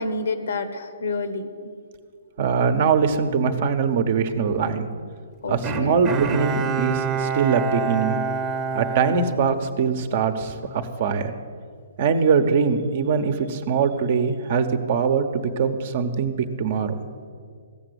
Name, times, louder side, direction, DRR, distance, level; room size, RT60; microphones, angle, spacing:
voice 1, 0.0-1.5 5.4-6.0, left 3 dB, 75° left, 10 dB, 1.2 m, -28 dB
voice 2, 2.4-4.8 5.5-8.2 8.7-11.3 12.0-16.9, right 6 dB, 50° right, 8 dB, 1.1 m, -22 dB
Bowed string instrument, 5.6-10.1 10.6-10.7, right 5 dB, 20° right, 1.0 m, -27 dB
15.5 x 6.8 x 8.1 m, 2.1 s
hypercardioid pair, 135°, 0 cm